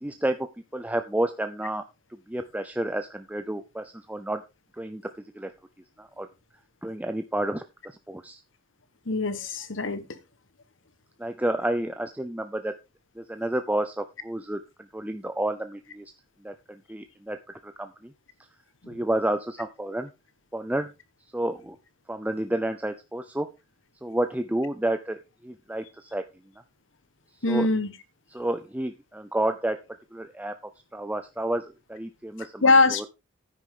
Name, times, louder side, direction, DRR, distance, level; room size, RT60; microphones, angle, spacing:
voice 1, 0.0-1.8 2.3-4.4 4.8-5.0 5.3-5.5 6.0-6.3 6.8-8.4 11.2-12.7 13.2-14.6 14.9-16.1 16.4-18.1 18.9-20.1 20.5-20.9 21.3-21.8 22.1-23.5 24.0-26.2 27.5-27.7 28.3-29.8 30.1-30.5 30.9-33.1, right 1 dB, 10° right, 0.6 m, -30 dB
voice 2, 9.1-10.2 18.8-19.0 27.4-27.9 32.6-33.1, left 3 dB, 65° left, 1.4 m, -22 dB
10.0 x 9.3 x 3.8 m
head